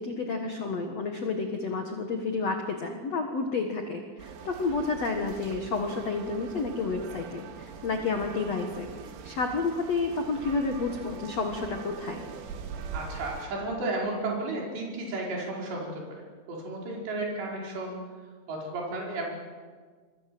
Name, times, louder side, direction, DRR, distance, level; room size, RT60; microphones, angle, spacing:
voice 1, 0.0-8.9 9.2-12.2, left 4 dB, 70° left, 4 dB, 1.5 m, -30 dB
sound 1, 4.2-13.5, right 6 dB, 80° right, 4.5 m, -42 dB
voice 2, 12.9-18.0 18.5-19.3, right 2 dB, 60° right, -2 dB, 7.3 m, -33 dB
28.0 x 22.5 x 7.9 m, 1.5 s
omnidirectional pair, 5.7 m